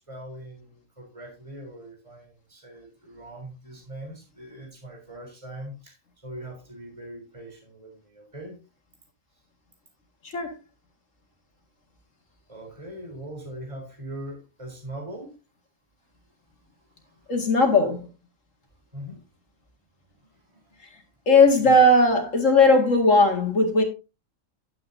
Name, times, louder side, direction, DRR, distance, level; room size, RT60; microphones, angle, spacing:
voice 1, 0.0-8.6 12.5-15.4 16.6-17.3 18.9-19.2 20.3-20.8 21.6-21.9, right 1 dB, 20° right, 3.9 m, -41 dB
voice 2, 17.3-18.1 21.3-23.8, left 2 dB, 60° left, 2.4 m, -18 dB
11.0 x 8.9 x 2.7 m
omnidirectional pair, 1.5 m